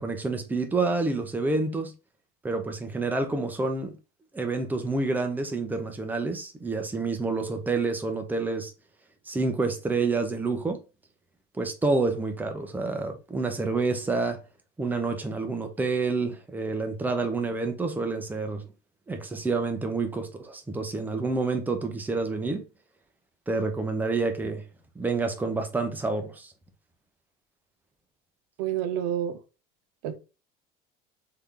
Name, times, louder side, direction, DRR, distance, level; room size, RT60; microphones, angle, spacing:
voice 1, 0.0-1.9 2.4-4.0 4.3-8.7 9.2-10.8 11.5-14.4 14.8-18.6 19.1-22.6 23.5-24.6 25.0-26.5, right 3 dB, 10° right, 0.8 m, -28 dB
voice 2, 28.6-29.4 30.0-30.2, right 10 dB, 85° right, 0.7 m, -28 dB
3.8 x 3.5 x 3.3 m
cardioid pair, 130°, 19 cm